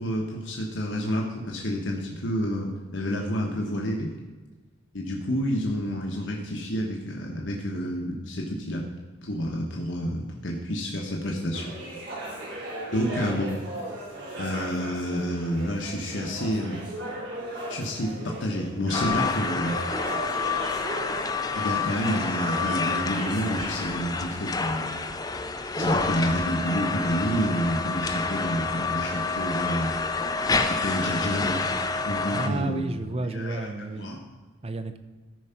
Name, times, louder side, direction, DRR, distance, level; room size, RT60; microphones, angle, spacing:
voice 1, 0.0-4.1 4.9-8.8 9.2-11.7 12.9-13.6 14.4-16.8 17.7-19.8 21.5-25.0 25.6-30.0 30.7-31.7 32.0-32.9 33.2-34.2, equal, 80° left, -1 dB, 1.1 m, -29 dB
sound 1, 11.5-24.0, right 1 dB, 60° right, 3.3 m, -36 dB
sound 2, 18.9-32.5, left 4 dB, 20° left, 0.5 m, -28 dB
voice 2, 32.3-34.1 34.6-35.0, right 2 dB, 30° right, 10 dB, 0.5 m, -31 dB
13.5 x 4.8 x 5.7 m, 1.3 s
head